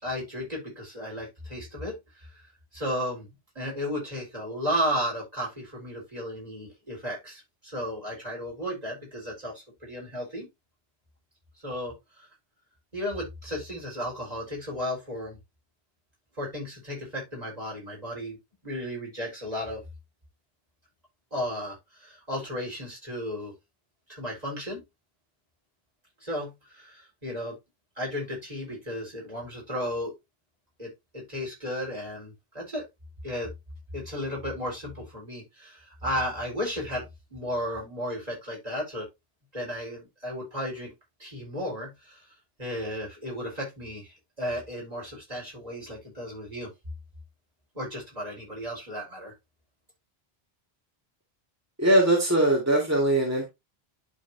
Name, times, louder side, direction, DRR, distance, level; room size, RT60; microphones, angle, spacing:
voice 1, 0.0-2.4 2.7-3.3 3.5-10.5 11.6-12.3 12.9-15.4 16.4-18.4 18.6-19.8 21.3-23.5 24.1-24.8 26.2-27.6 28.0-30.1 30.8-32.8 33.2-33.5 33.9-39.1 39.5-40.9 41.2-42.3 42.6-46.7 47.7-49.3, equal, 40° right, 4.2 m, -34 dB
voice 2, 51.8-53.4, right 1 dB, 15° right, 2.1 m, -21 dB
11.5 x 4.3 x 2.7 m
omnidirectional pair, 1.1 m